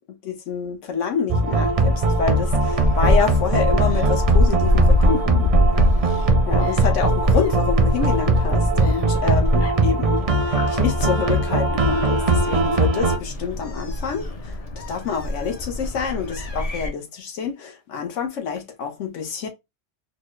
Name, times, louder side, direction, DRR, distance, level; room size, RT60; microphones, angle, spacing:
voice 1, 0.2-5.5 6.5-14.6 14.9-19.5, left 6 dB, 85° left, 1.2 m, -27 dB
sound 1, 1.3-13.2, right 2 dB, 45° right, 0.4 m, -21 dB
Gull seagull, 1.5-16.9, left 1 dB, 40° left, 0.6 m, -24 dB
4.1 x 2.1 x 3.1 m
omnidirectional pair, 1.2 m